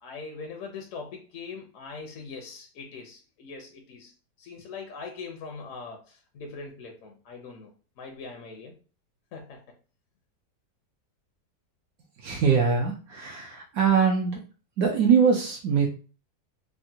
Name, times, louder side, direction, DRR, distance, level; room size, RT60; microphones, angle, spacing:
voice 1, 0.0-4.1 4.4-8.8 9.3-9.7, left 4 dB, 65° left, 2 dB, 0.8 m, -41 dB
voice 2, 12.2-14.4 14.8-15.9, right 6 dB, 70° right, 0 dB, 0.9 m, -22 dB
3.6 x 2.1 x 2.7 m, 0.36 s
omnidirectional pair, 1.8 m